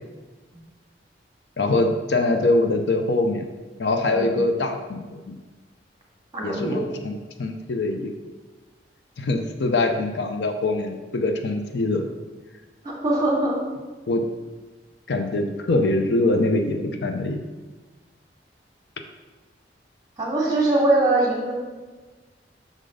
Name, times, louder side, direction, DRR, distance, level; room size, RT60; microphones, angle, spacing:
voice 1, 1.6-3.4 3.8-5.4 6.4-8.1 9.2-12.1 14.1-14.2 15.1-17.4, left 2 dB, 70° left, 5 dB, 0.6 m, -23 dB
voice 2, 6.3-6.9 12.8-13.6 20.2-21.5, right 2 dB, 20° right, -3 dB, 1.8 m, -22 dB
6.4 x 3.9 x 4.9 m, 1.3 s
head